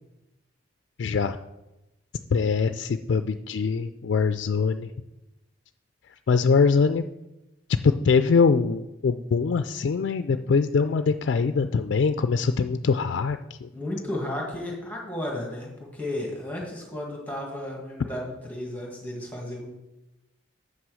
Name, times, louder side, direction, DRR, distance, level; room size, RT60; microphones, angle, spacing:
voice 1, 1.0-1.4 2.3-4.9 6.3-7.0 7.8-13.7, left 5 dB, 60° left, 9 dB, 0.3 m, -23 dB
voice 2, 13.7-19.7, left 1 dB, 10° left, -2 dB, 1.7 m, -33 dB
7.6 x 6.1 x 6.2 m, 0.97 s
head